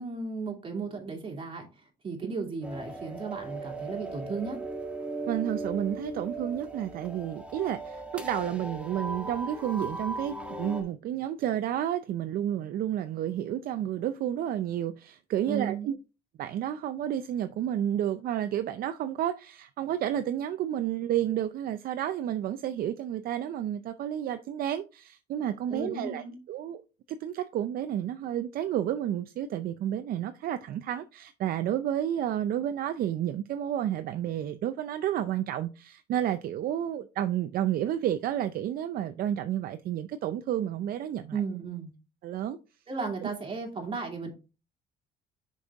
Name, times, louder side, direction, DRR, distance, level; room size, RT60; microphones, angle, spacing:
voice 1, 0.0-1.7 2.0-4.6 15.5-15.9 25.7-26.4 41.3-41.9 42.9-44.3, right 4 dB, 30° right, 2.5 m, -35 dB
sound 1, 2.6-10.8, right 2 dB, 5° right, 1.5 m, -38 dB
voice 2, 5.3-16.0 16.4-26.8 27.1-41.4 42.2-42.6 43.2-43.3, right 11 dB, 60° right, 0.5 m, -31 dB
6.3 x 5.4 x 3.5 m
cardioid pair, 110°, 17 cm